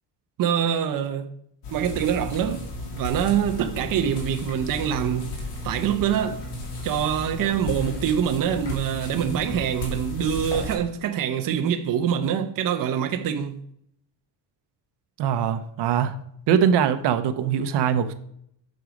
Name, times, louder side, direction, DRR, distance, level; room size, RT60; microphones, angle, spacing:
voice 1, 0.4-1.3 1.7-2.7 2.9-6.4 6.8-13.6, right 9 dB, 55° right, 0.7 m, -25 dB
sound 1, 1.6-10.7, left 2 dB, 85° left, 2.9 m, -34 dB
voice 2, 15.2-16.1 16.5-18.1, right 8 dB, 75° right, 0.8 m, -22 dB
7.9 x 6.2 x 5.2 m
cardioid pair, 150°, 41 cm